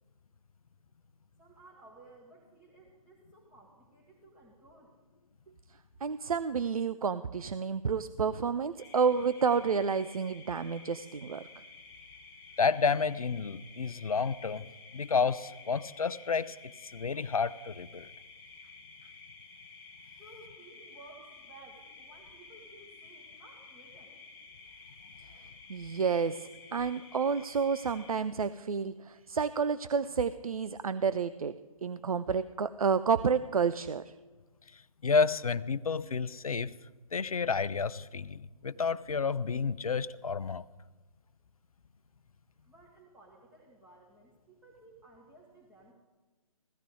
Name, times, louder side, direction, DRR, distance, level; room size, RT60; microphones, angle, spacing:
voice 1, 1.4-5.0 20.1-24.2 42.6-45.9, right 2 dB, 5° right, -4 dB, 1.5 m, -56 dB
voice 2, 6.0-11.5 25.7-31.5 31.8-34.1, right 6 dB, 75° right, 13 dB, 0.5 m, -30 dB
sound 1, 8.8-28.1, left 4 dB, 15° left, 1.7 m, -52 dB
voice 3, 12.6-14.7 14.9-16.6 16.9-18.1 34.7-36.7 37.1-40.6, left 5 dB, 75° left, 16 dB, 0.6 m, -30 dB
16.5 x 14.0 x 3.7 m, 1.2 s
figure-of-eight pair, 140°, 18 cm